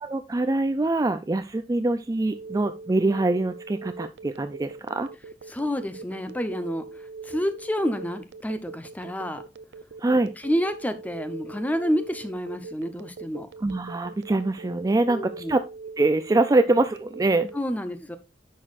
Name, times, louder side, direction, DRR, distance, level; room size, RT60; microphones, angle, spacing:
voice 1, 0.0-5.1 10.0-10.3 13.6-15.6 16.0-17.5, right 2 dB, 20° right, 0.3 m, -24 dB
Telephone, 2.3-17.6, right 3 dB, 85° right, 0.6 m, -41 dB
voice 2, 5.5-6.9 7.2-9.4 10.4-13.5 15.1-15.6 17.5-18.2, equal, 10° left, 0.8 m, -29 dB
9.9 x 6.5 x 2.5 m
head